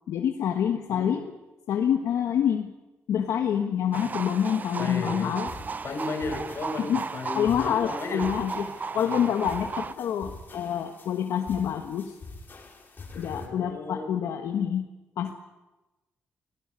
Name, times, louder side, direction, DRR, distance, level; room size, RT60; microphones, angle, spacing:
voice 1, 0.1-1.4 1.7-2.7 3.1-5.5 5.8-5.9 6.8-7.1 7.3-12.1 13.1-14.9 15.2-15.3, left 9 dB, 85° left, 5 dB, 1.4 m, -27 dB
sound 1, 3.9-9.9, right 4 dB, 35° right, 0.7 m, -35 dB
voice 2, 4.8-5.3 5.8-8.2 9.0-9.3 13.2-14.1, left 3 dB, 55° left, 5 dB, 5.5 m, -34 dB
sound 2, 5.5-13.5, left 3 dB, 40° left, 5.4 m, -46 dB
18.5 x 18.5 x 9.7 m, 1.1 s
cardioid pair, 100°, 5 cm